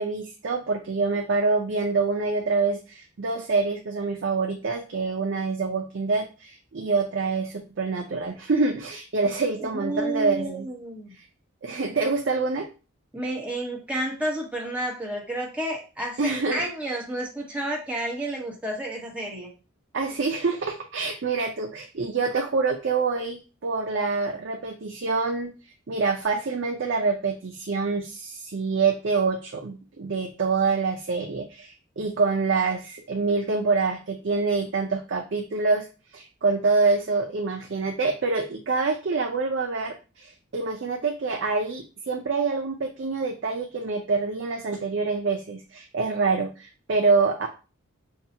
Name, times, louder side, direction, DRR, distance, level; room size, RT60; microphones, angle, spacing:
voice 1, 0.0-10.7 11.2-11.3 11.6-12.7 16.2-16.6 19.9-25.5 25.9-35.9 36.1-47.5, right 4 dB, 60° right, 2 dB, 0.5 m, -26 dB
voice 2, 9.6-11.1 13.1-19.5, right 1 dB, 5° right, -2 dB, 1.1 m, -31 dB
5.5 x 2.3 x 2.8 m, 0.32 s
head